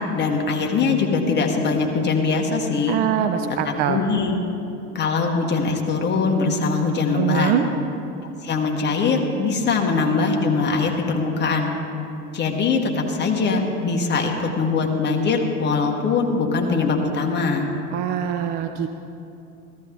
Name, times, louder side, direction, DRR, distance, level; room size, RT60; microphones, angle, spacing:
voice 1, 0.0-3.0 3.6-4.3 4.9-7.5 8.4-11.7 12.3-17.7, left 4 dB, 25° left, 1 dB, 1.5 m, -22 dB
voice 2, 2.9-4.0 7.1-7.6 17.9-18.9, right 9 dB, 25° right, 8 dB, 0.3 m, -23 dB
14.0 x 13.5 x 3.8 m, 2.7 s
hypercardioid pair, 90°, 44 cm